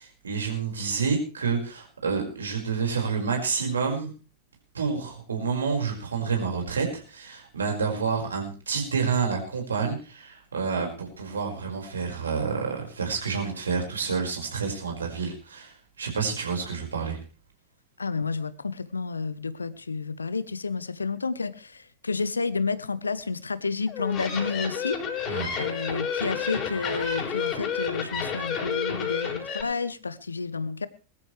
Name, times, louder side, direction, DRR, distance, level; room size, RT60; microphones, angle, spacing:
voice 1, 0.0-4.1 4.7-17.2 25.3-25.5, right 5 dB, 70° right, 1 dB, 5.3 m, -29 dB
voice 2, 18.0-30.9, left 4 dB, 75° left, 17 dB, 0.9 m, -30 dB
sound 1, 23.9-29.6, left 7 dB, 30° left, 4.7 m, -30 dB
21.5 x 13.0 x 3.3 m, 0.34 s
figure-of-eight pair, 90°, 0 cm